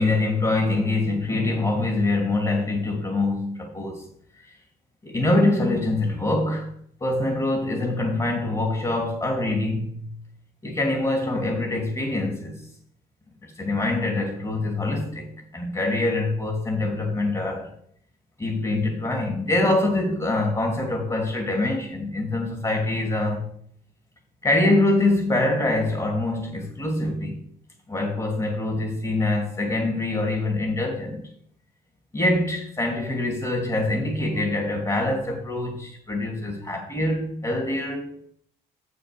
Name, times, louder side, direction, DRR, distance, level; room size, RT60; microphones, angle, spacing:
voice 1, 0.0-4.1 5.0-6.7 7.0-10.1 10.6-12.6 13.4-17.7 18.4-23.5 24.4-27.4 27.9-31.2 32.1-38.2, left 2 dB, 20° left, 2.4 m, -24 dB
7.1 x 6.7 x 6.7 m
cardioid pair, 90°, 20 cm